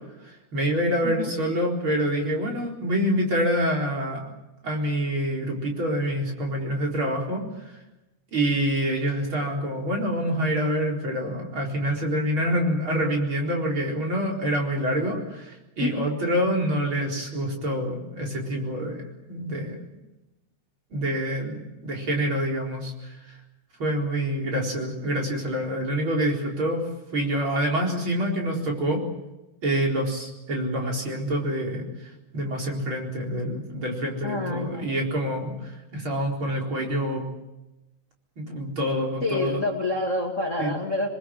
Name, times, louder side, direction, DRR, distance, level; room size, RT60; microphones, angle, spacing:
voice 1, 0.2-4.2 4.6-7.8 8.3-19.8 20.9-23.3 23.8-26.8 27.1-29.0 29.6-37.2 38.4-39.6 40.6-40.7, equal, 40° right, -1 dB, 5.0 m, -26 dB
voice 2, 34.2-34.9 39.2-41.1, left 2 dB, 25° left, 1 dB, 2.3 m, -28 dB
27.5 x 22.0 x 7.7 m, 0.98 s
omnidirectional pair, 3.5 m